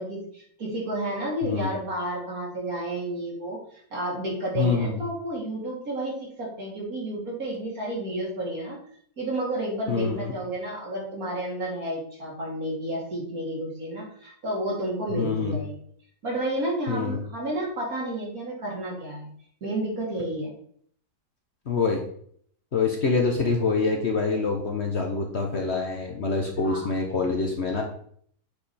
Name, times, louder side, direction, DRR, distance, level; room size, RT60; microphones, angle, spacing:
voice 1, 0.0-8.8 9.2-15.8 16.2-19.3 19.6-20.5 26.6-26.9, right 1 dB, 55° right, -3 dB, 3.1 m, -31 dB
voice 2, 4.5-5.0 9.9-10.3 15.1-15.6 16.9-17.2 21.7-22.0 22.7-27.8, left 4 dB, 45° left, 1 dB, 1.1 m, -25 dB
8.5 x 5.0 x 4.2 m, 0.62 s
omnidirectional pair, 1.8 m